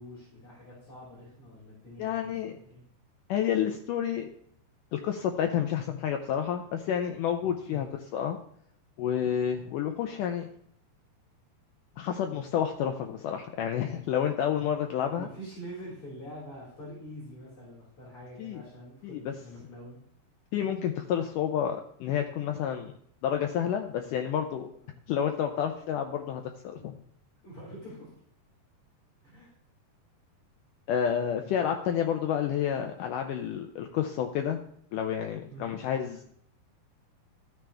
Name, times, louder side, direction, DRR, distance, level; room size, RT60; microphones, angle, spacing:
voice 1, 0.0-2.8 7.4-7.9 15.1-20.0 26.7-26.8 27.4-28.1 29.2-29.5 35.5-35.7, equal, 35° left, -9 dB, 5.4 m, -45 dB
voice 2, 2.0-2.6 3.3-4.3 4.9-7.9 8.1-8.4 9.0-10.5 12.0-15.3 18.4-18.6 19.0-19.3 20.5-22.9 23.2-24.7 25.1-27.0 30.9-34.6 34.9-36.3, left 9 dB, 85° left, 4 dB, 1.8 m, -30 dB
14.0 x 9.6 x 3.4 m, 0.67 s
omnidirectional pair, 4.5 m